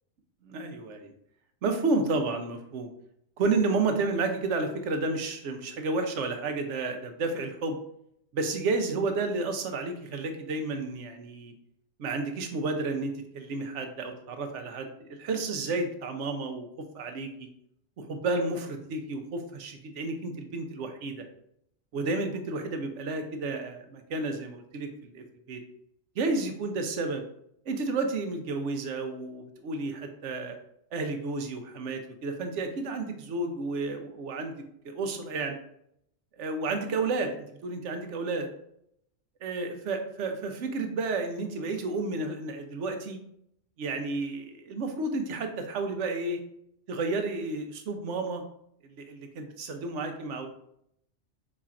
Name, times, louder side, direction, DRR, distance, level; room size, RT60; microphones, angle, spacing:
voice 1, 0.4-1.1 1.6-2.9 3.4-7.8 8.3-11.5 12.0-16.7 16.9-17.5 18.0-21.2 21.9-25.6 26.2-27.2 27.7-30.5 30.9-35.6 36.4-38.5 39.4-43.2 43.8-46.4 46.9-48.4 48.9-50.5, right 3 dB, 85° right, 6 dB, 1.0 m, -31 dB
4.9 x 4.2 x 2.4 m, 0.73 s
omnidirectional pair, 1.2 m